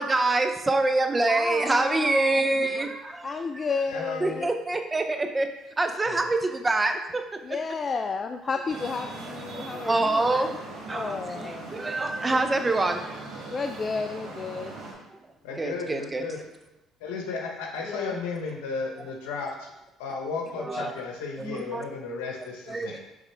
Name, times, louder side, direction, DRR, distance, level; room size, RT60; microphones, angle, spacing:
voice 1, 0.0-3.7 4.2-5.5 5.8-7.6 9.5-10.5 10.9-13.2 15.1-15.2 15.5-16.2 20.6-20.9 21.4-21.8 22.7-23.0, right 2 dB, 20° right, 6 dB, 0.7 m, -26 dB
voice 2, 1.3-2.5 3.2-4.5 7.4-10.6 10.9-11.6 13.5-14.7 17.8-18.1, left 4 dB, 35° left, 6 dB, 0.3 m, -32 dB
voice 3, 3.9-4.4 6.1-6.3 15.4-16.4 17.0-19.7 20.0-23.0, left 4 dB, 90° left, 1 dB, 1.0 m, -34 dB
Traffic noise roadway noise, 8.7-14.9, right 3 dB, 85° right, 1.8 m, -40 dB
7.7 x 3.6 x 3.4 m, 0.94 s
supercardioid pair, 75°, 0 cm